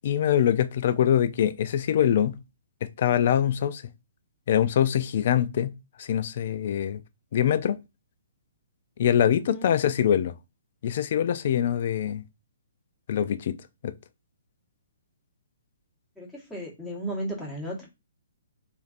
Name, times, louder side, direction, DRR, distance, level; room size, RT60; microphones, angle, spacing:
voice 1, 0.0-2.4 2.8-3.8 4.5-5.7 6.0-7.0 7.3-7.8 9.0-10.3 10.8-12.2 13.1-13.6 13.8-13.9, left 9 dB, 50° left, 0.3 m, -24 dB
voice 2, 9.4-9.7 16.2-17.9, right 1 dB, 5° left, 1.2 m, -35 dB
3.2 x 2.5 x 2.4 m
figure-of-eight pair, 130°, 0 cm